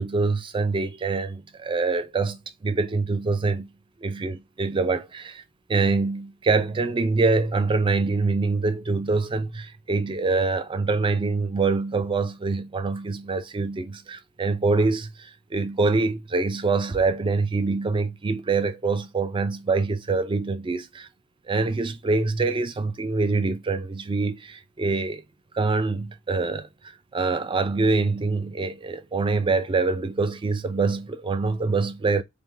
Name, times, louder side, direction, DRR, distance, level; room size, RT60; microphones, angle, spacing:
voice 1, 0.0-3.7 4.0-5.4 5.7-21.1 21.5-25.2 25.5-26.7 27.1-32.2, right 3 dB, 20° right, 0.4 m, -25 dB
3.4 x 2.1 x 3.2 m
head